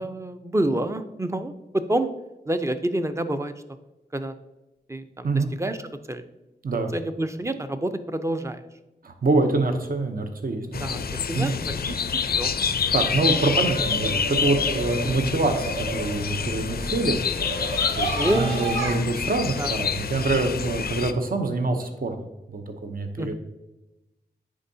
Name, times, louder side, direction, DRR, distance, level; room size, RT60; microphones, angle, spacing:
voice 1, 0.0-2.1 2.5-3.5 4.1-4.3 4.9-5.8 6.1-6.2 6.9-8.6 10.7-11.0 11.3-12.5 18.2-18.9 19.6-19.7 23.2-23.3, right 1 dB, 15° right, 10 dB, 0.5 m, -28 dB
voice 2, 9.0-11.0 11.3-11.6 12.9-17.2 18.0-23.3, right 3 dB, 50° right, 6 dB, 0.7 m, -25 dB
sound 1, 10.7-21.1, left 6 dB, 55° left, 0.4 m, -27 dB
sound 2, 12.5-18.9, right 2 dB, 80° right, 1.6 m, -33 dB
9.7 x 3.7 x 2.7 m, 1.0 s
cardioid pair, 50°, 19 cm